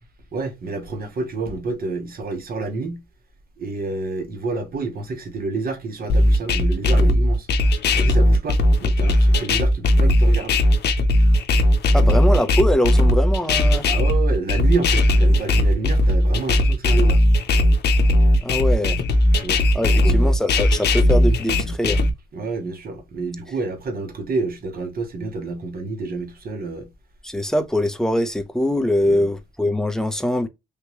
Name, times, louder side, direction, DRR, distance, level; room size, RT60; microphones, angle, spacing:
voice 1, 0.3-3.0 3.6-7.5 8.0-10.6 13.8-17.2 19.3-20.3 22.3-26.9 29.0-29.2, right 3 dB, 50° right, 1.2 m, -29 dB
sound 1, 6.1-22.1, left 1 dB, 55° left, 0.7 m, -17 dB
voice 2, 11.9-13.9 18.4-19.0 19.7-22.0 27.2-30.5, left 1 dB, 5° left, 0.7 m, -22 dB
3.5 x 2.9 x 3.0 m
cardioid pair, 90°, 20 cm